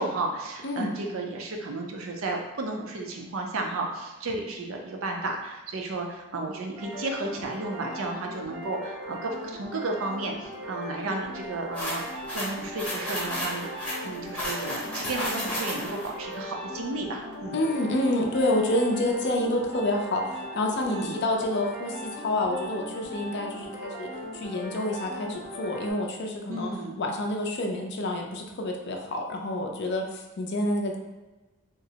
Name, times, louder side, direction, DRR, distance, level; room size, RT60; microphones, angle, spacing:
voice 1, 0.0-13.7 14.0-17.6 20.9-21.2 26.5-27.0, right 2 dB, 65° right, 1 dB, 0.5 m, -33 dB
sound 1, 6.8-25.9, equal, 80° right, 1.0 m, -39 dB
sound 2, 11.7-16.1, left 1 dB, 5° left, 0.8 m, -33 dB
voice 2, 17.5-26.7 27.0-31.0, left 1 dB, 50° left, 2 dB, 0.4 m, -28 dB
3.6 x 2.0 x 2.7 m, 1.1 s
head